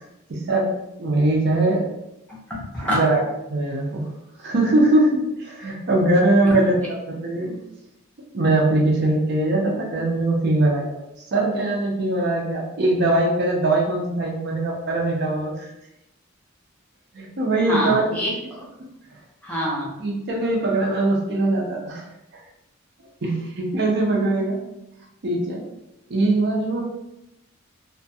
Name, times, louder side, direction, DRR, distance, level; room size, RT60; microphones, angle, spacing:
voice 1, 0.3-0.7 1.0-1.8 2.9-3.2 3.5-4.1 4.4-6.8 7.1-7.6 8.3-10.9 11.3-15.7 17.1-18.1 20.0-22.0 23.2-24.6 25.2-25.6 26.1-26.8, right 2 dB, 55° right, -1 dB, 0.5 m, -21 dB
voice 2, 2.3-3.0 6.4-6.6 17.7-18.6 19.4-19.9, equal, 5° left, -5 dB, 0.5 m, -26 dB
2.3 x 2.2 x 2.6 m, 0.87 s
head